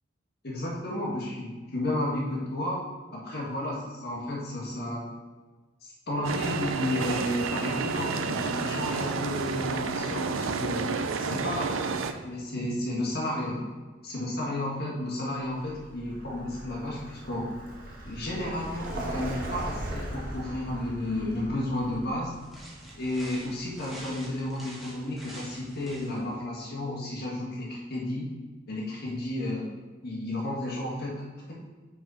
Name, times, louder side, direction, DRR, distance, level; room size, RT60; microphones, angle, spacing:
voice 1, 0.4-2.8 3.1-5.0 5.8-10.9 11.2-13.6 14.0-17.5 18.0-22.3 23.0-28.3 28.7-29.7 30.0-31.6, left 1 dB, 55° left, -3 dB, 1.6 m, -32 dB
sound 1, 6.2-12.1, right 5 dB, 85° right, 0.5 m, -30 dB
Vehicle, 15.4-24.2, right 1 dB, 50° right, 1.5 m, -39 dB
sound 2, 22.3-26.4, right 1 dB, ahead, 1.4 m, -47 dB
5.6 x 5.5 x 4.8 m, 1.3 s
head